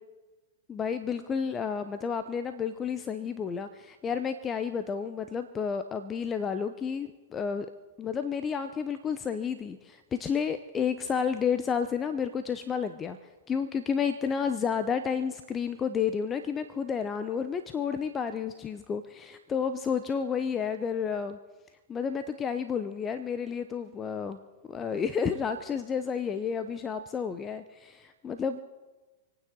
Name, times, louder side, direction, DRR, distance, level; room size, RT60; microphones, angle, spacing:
voice 1, 0.7-7.7 8.0-13.2 13.5-21.4 21.9-24.4 24.7-28.6, left 6 dB, 25° left, 10 dB, 0.8 m, -31 dB
28.0 x 9.3 x 3.9 m, 1.2 s
hypercardioid pair, 105°, 0 cm